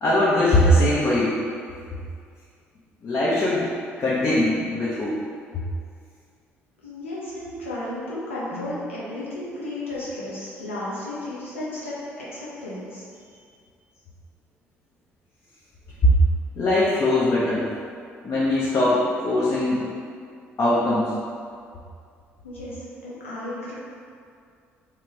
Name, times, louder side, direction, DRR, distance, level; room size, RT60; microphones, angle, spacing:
voice 1, 0.0-1.4 3.0-3.7 4.0-5.2 5.5-5.6 8.5-8.7 16.0-16.1 16.6-17.7 18.2-19.8 20.6-21.1, left 1 dB, 45° left, -8 dB, 0.6 m, -21 dB
voice 2, 6.8-13.0 22.4-23.7, left 1 dB, 85° left, -8 dB, 0.5 m, -33 dB
2.9 x 2.4 x 3.0 m, 2.2 s
figure-of-eight pair, 50°, 7 cm